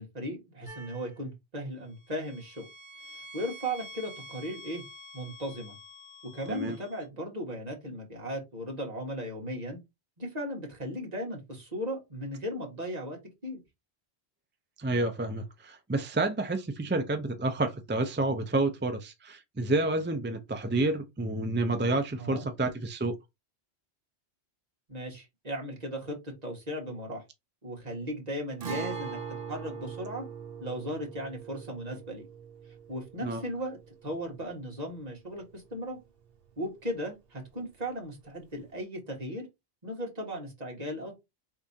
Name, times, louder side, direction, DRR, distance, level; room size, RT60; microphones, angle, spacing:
voice 1, 0.0-2.6 3.1-4.8 5.1-5.8 6.3-9.8 10.2-13.2 13.4-13.6 22.2-22.4 24.9-27.2 27.6-29.2 29.5-30.2 30.6-32.2 32.9-36.0 36.6-39.5 39.8-41.2, equal, 40° right, 1.8 m, -37 dB
sound 1, 0.7-1.2 1.9-7.0, equal, 30° left, 1.4 m, -48 dB
voice 2, 14.8-23.1 33.2-33.4, right 2 dB, 20° right, 0.3 m, -29 dB
Guitar, 28.6-36.2 36.5-36.6 38.6-38.7, right 6 dB, 60° right, 1.1 m, -41 dB
4.8 x 3.6 x 2.8 m
omnidirectional pair, 1.1 m